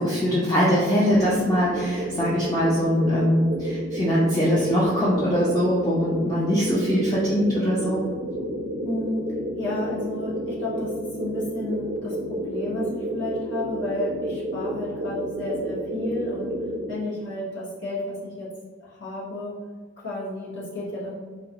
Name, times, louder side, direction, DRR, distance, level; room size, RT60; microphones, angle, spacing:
voice 1, 0.0-8.0, equal, 20° left, -7 dB, 0.4 m, -22 dB
sound 1, 1.1-17.0, right 1 dB, 45° right, 0.4 m, -31 dB
voice 2, 8.8-9.2 9.6-16.6 16.9-18.5 18.8-19.5 20.0-21.1, left 2 dB, 80° left, -7 dB, 1.0 m, -32 dB
3.7 x 2.2 x 2.8 m, 1.5 s
head